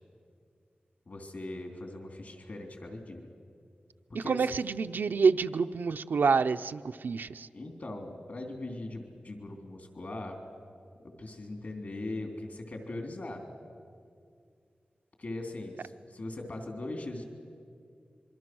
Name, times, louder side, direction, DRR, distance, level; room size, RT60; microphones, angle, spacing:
voice 1, 1.1-3.2 4.2-4.5 7.5-10.4 11.0-13.4 15.2-17.2, left 2 dB, 60° left, 3 dB, 3.6 m, -40 dB
voice 2, 4.1-7.5, right 5 dB, 80° right, 9 dB, 0.6 m, -27 dB
25.5 x 23.0 x 6.2 m, 2.3 s
wide cardioid pair, 85°, 3 cm